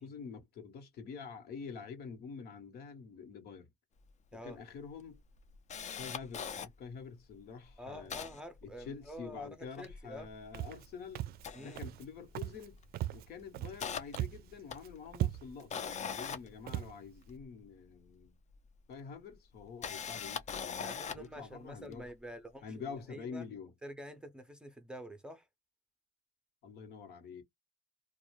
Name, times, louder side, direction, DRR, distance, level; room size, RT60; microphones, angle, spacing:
voice 1, 0.0-3.7 4.4-5.2 5.9-8.2 8.6-11.2 11.6-12.8 13.1-18.4 18.9-22.1 22.6-23.7 26.6-27.4, left 5 dB, 65° left, 1.2 m, -47 dB
Camera, 4.1-4.2 4.5-4.6 5.0-6.7 7.3-7.4 7.7-9.3 9.6-10.9 11.3-12.4 12.7-13.0 13.4-17.4 18.5-18.6 19.5-21.3 21.9-22.0, left 7 dB, 45° left, 0.6 m, -42 dB
voice 2, 7.8-10.3 11.5-11.8 20.8-23.5 23.8-25.5, equal, 5° right, 0.6 m, -48 dB
Walk footsteps, 10.5-10.9 11.2-11.5 11.8-12.1 12.4-12.7 12.9-13.9 14.1-14.5 14.8-14.9 15.1-15.7 16.2-16.3 16.7-16.9, right 14 dB, 65° right, 0.4 m, -37 dB
2.5 x 2.3 x 3.1 m
cardioid pair, 110°, 17 cm